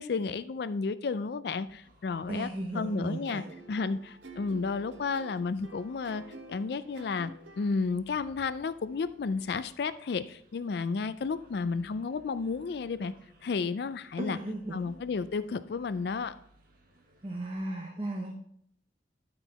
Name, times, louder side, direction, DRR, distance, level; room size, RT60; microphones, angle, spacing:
voice 1, 0.0-2.5 2.7-3.4 3.7-6.2 6.5-13.1 13.4-14.4 14.7-16.4, left 4 dB, 65° left, 14 dB, 0.4 m, -32 dB
sound 1, 1.7-17.6, equal, 50° right, 1.4 m, -62 dB
voice 2, 2.3-3.5 14.2-15.0 17.2-18.4, right 1 dB, 30° right, 1 dB, 0.9 m, -36 dB
sound 2, 2.7-7.8, right 2 dB, 85° right, 0.9 m, -49 dB
12.5 x 4.5 x 4.1 m, 0.68 s
head